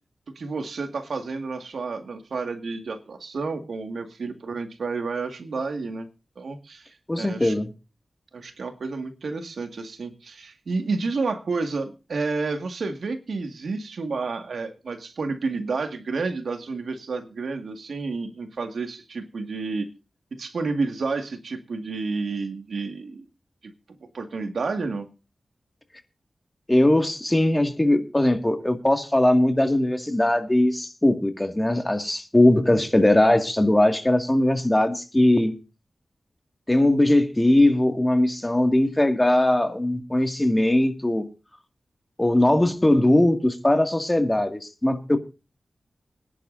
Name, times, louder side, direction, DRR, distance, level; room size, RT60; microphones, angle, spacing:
voice 1, 0.4-6.1 6.4-6.9 7.2-7.5 8.3-19.9 20.4-23.2 23.6-23.7 24.1-25.1, right 4 dB, 85° right, 6 dB, 2.0 m, -30 dB
voice 2, 7.1-7.7 26.7-35.6 36.7-41.3 42.2-45.2, left 1 dB, 15° left, 6 dB, 2.1 m, -20 dB
25.0 x 11.0 x 2.7 m, 0.31 s
wide cardioid pair, 80°, 0 cm